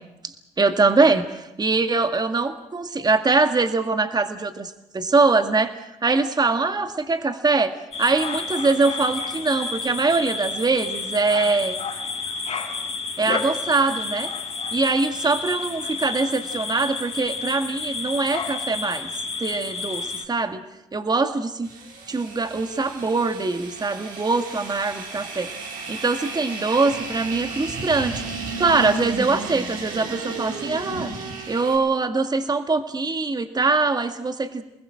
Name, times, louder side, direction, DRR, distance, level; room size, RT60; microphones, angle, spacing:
voice 1, 0.2-5.8 6.0-11.8 13.2-14.3 14.7-19.1 19.4-20.6 20.9-21.7 22.1-25.5 25.9-28.2 28.6-31.1 31.5-34.6, right 3 dB, 25° right, 7 dB, 2.0 m, -23 dB
sound 1, 7.9-20.3, left 4 dB, 40° left, 5.0 m, -31 dB
sound 2, 21.6-31.8, right 3 dB, 65° right, 5.8 m, -34 dB
29.0 x 20.5 x 6.5 m, 0.93 s
hypercardioid pair, 50°, 16 cm